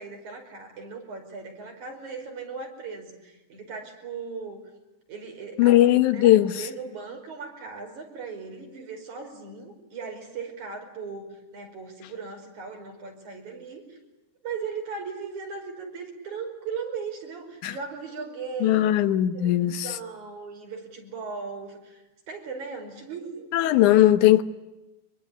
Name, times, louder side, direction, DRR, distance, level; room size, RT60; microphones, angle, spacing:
voice 1, 0.0-4.6 5.1-14.0 14.4-18.9 19.3-23.5, right 5 dB, 75° right, 6.5 m, -38 dB
voice 2, 5.6-6.7 17.6-17.8 18.6-19.9 23.5-24.4, left 14 dB, 80° left, 2.6 m, -19 dB
24.5 x 22.5 x 10.0 m
omnidirectional pair, 3.4 m